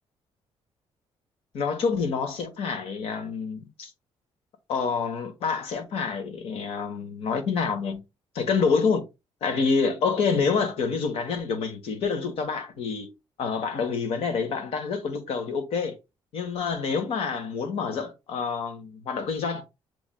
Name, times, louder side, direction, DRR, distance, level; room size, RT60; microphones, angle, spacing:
voice 1, 1.5-3.9 4.7-8.0 8.3-9.0 9.4-13.1 13.4-16.0 16.3-19.6, left 5 dB, 70° left, 1.2 m, -27 dB
6.9 x 3.2 x 2.3 m
cardioid pair, 175°, 10 cm